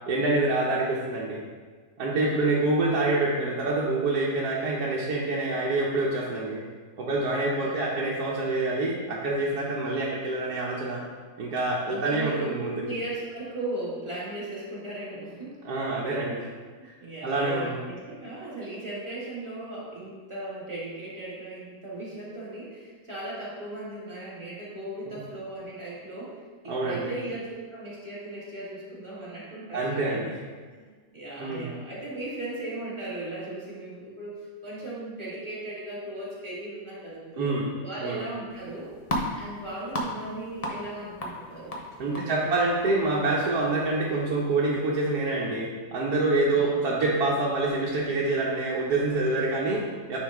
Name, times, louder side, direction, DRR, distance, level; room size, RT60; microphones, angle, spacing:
voice 1, 0.1-1.4 2.0-6.6 7.0-11.0 11.4-12.8 15.6-16.4 16.8-16.9 17.2-17.8 26.7-27.1 29.7-30.4 31.4-31.7 37.4-37.7 38.0-38.2 42.0-50.2, right 2 dB, 75° right, -5 dB, 1.4 m, -26 dB
voice 2, 2.1-2.7 7.6-7.8 11.9-12.5 12.8-15.6 16.3-16.4 17.0-26.3 26.6-30.2 30.7-34.3 34.6-37.5 37.8-38.9 39.3-42.6 46.5-46.8, right 2 dB, 20° right, -8 dB, 1.8 m, -37 dB
sound 1, 38.5-45.2, left 1 dB, 35° left, 0.7 m, -37 dB
9.4 x 3.9 x 3.5 m, 1.5 s
omnidirectional pair, 1.6 m